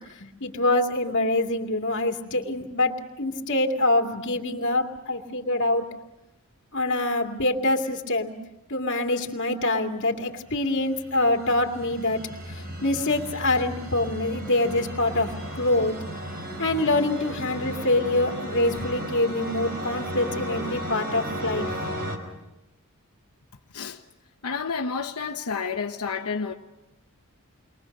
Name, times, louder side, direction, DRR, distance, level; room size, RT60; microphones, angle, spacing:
voice 1, 0.2-5.9 6.7-8.3 8.7-12.2 12.5-15.9 16.6-21.7, left 2 dB, 55° left, 2.4 m, -25 dB
sound 1, 10.6-22.2, equal, 45° right, 4.8 m, -35 dB
voice 2, 24.4-26.5, left 5 dB, 90° left, 1.0 m, -30 dB
29.5 x 23.0 x 6.6 m
head